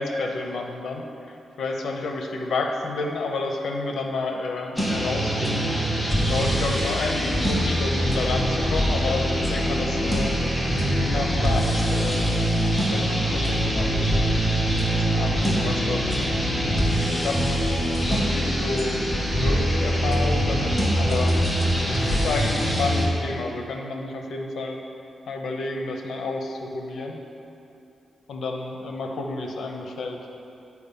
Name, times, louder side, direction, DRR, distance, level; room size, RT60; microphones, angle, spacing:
voice 1, 0.0-5.7 6.3-10.3 11.0-12.2 12.9-14.4 14.9-17.5 18.1-19.0 19.4-21.4 21.9-24.8 25.3-27.2 28.3-30.2, left 3 dB, 70° left, 2 dB, 0.8 m, -30 dB
sound 1, 4.8-23.1, equal, ahead, 0.9 m, -23 dB
8.3 x 4.7 x 5.5 m, 2.8 s
wide cardioid pair, 175°, 0 cm